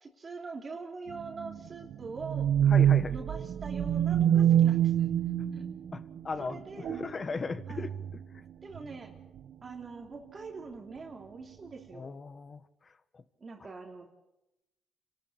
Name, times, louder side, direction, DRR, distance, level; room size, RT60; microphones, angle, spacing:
voice 1, 0.0-2.5 3.1-5.1 5.5-5.7 6.4-6.9 7.7-7.9 8.6-9.1 9.6-12.2 13.4-14.1, right 4 dB, 35° right, 2 dB, 3.0 m, -43 dB
sound 1, 1.1-6.2 6.7-7.2 7.6-8.2 8.7-8.9 9.4-9.5, right 10 dB, 70° right, 1.3 m, -26 dB
voice 2, 2.7-3.2 5.4-5.5 5.9-7.9 8.3-8.4 11.9-13.2 13.6-13.7, left 4 dB, 35° left, 13 dB, 1.4 m, -38 dB
28.0 x 13.0 x 8.6 m, 0.91 s
cardioid pair, 90°, 0 cm